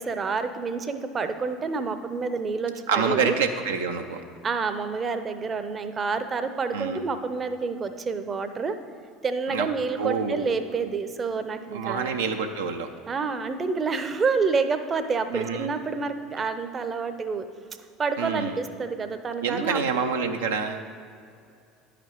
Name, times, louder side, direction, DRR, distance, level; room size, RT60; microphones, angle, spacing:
voice 1, 0.0-3.3 4.4-8.8 9.2-12.2 13.1-17.5 18.0-19.8, right 4 dB, 30° right, 9 dB, 0.6 m, -28 dB
voice 2, 2.9-4.2 6.7-7.0 9.5-9.7 10.0-10.5 11.7-12.9 15.3-15.7 18.2-18.6 19.4-20.8, right 5 dB, 75° right, 4 dB, 0.5 m, -27 dB
10.5 x 5.0 x 4.7 m, 2.4 s
figure-of-eight pair, 65°, 0 cm